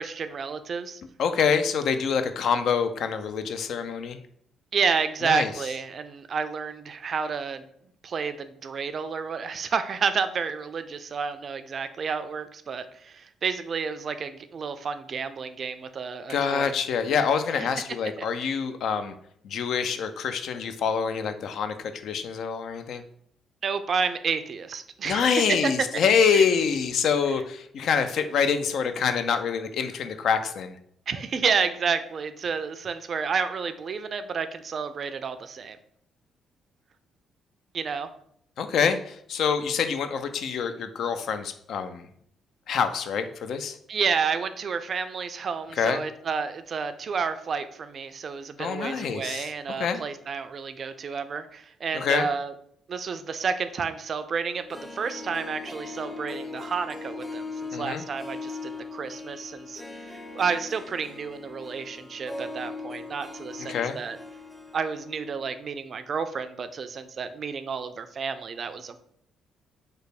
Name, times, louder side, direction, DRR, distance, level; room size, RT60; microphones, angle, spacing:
voice 1, 0.0-1.0 4.7-7.6 8.0-16.7 17.6-17.7 18.4-18.5 23.6-25.7 26.3-26.4 31.1-35.8 37.7-38.1 43.9-52.5 52.9-59.8 60.1-64.2 64.7-69.0, right 5 dB, 55° right, 11 dB, 0.3 m, -30 dB
voice 2, 1.2-4.2 5.2-5.5 16.3-19.2 19.4-23.0 25.0-30.8 38.6-42.1 42.7-43.8 45.7-46.0 48.6-49.5 49.8-50.0 51.9-52.3 57.7-58.0 63.6-64.0, left 6 dB, 65° left, 9 dB, 0.3 m, -26 dB
Harp, 54.5-65.6 65.8-65.9, left 3 dB, 10° left, 0.6 m, -39 dB
3.1 x 2.2 x 4.1 m, 0.68 s
hypercardioid pair, 50°, 0 cm